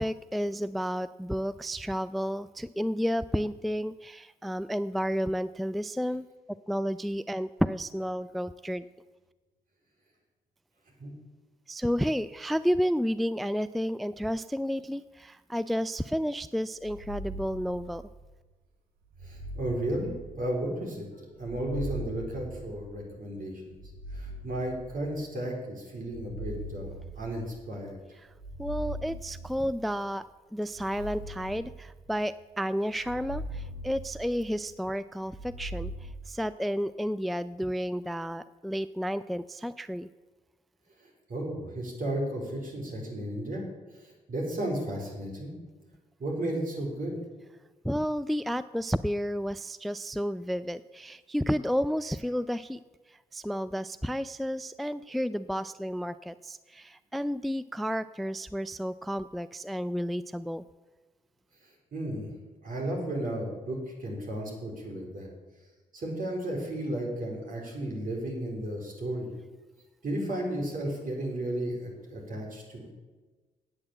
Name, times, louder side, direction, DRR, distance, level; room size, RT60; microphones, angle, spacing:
voice 1, 0.0-6.3 6.7-8.8 11.7-18.0 28.2-28.3 28.6-30.2 30.5-40.1 47.8-52.8 53.3-60.6, equal, ahead, 15 dB, 0.3 m, -31 dB
sound 1, 16.8-18.3 19.1-20.8 21.4-23.1 23.8-25.3 26.0-27.8 28.3-29.9 30.7-32.4 32.9-34.7 35.2-36.1, right 1 dB, 85° right, 1.1 m, -41 dB
voice 2, 19.2-23.8 24.1-28.0 41.3-43.6 44.0-45.5 46.2-47.2 61.9-62.3 62.6-65.3 65.9-69.3 70.0-72.9, right 1 dB, 55° right, 0 dB, 4.2 m, -34 dB
8.8 x 8.6 x 7.4 m, 1.3 s
hypercardioid pair, 50°, 17 cm